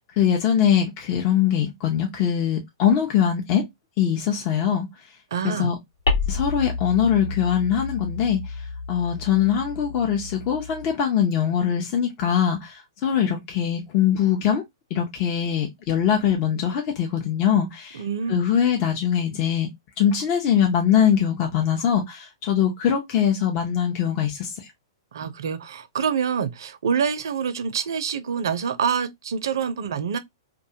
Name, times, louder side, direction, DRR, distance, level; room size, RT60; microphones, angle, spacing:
voice 1, 0.2-3.6 4.0-4.9 5.4-5.7 6.3-8.4 8.9-14.6 14.9-18.0 18.3-19.7 20.0-24.7, left 9 dB, 40° left, 0.5 m, -22 dB
voice 2, 5.3-5.7 13.2-13.3 17.9-18.4 25.1-30.2, right 7 dB, 70° right, 0.4 m, -26 dB
sound 1, 6.1-10.9, left 4 dB, 85° left, 1.1 m, -30 dB
2.4 x 2.2 x 2.7 m
hypercardioid pair, 115°, 2 cm